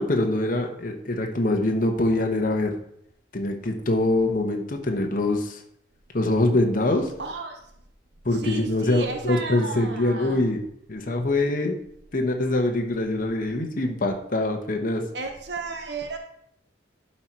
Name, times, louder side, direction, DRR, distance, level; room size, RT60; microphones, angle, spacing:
voice 1, 0.0-2.7 3.3-5.6 6.1-7.1 8.2-10.6 10.9-11.8 12.1-15.0, left 2 dB, 45° left, 3 dB, 1.1 m, -24 dB
voice 2, 7.2-7.6 8.3-10.4 15.1-16.2, right 4 dB, 60° right, 4 dB, 0.9 m, -34 dB
11.5 x 4.5 x 4.6 m, 0.72 s
head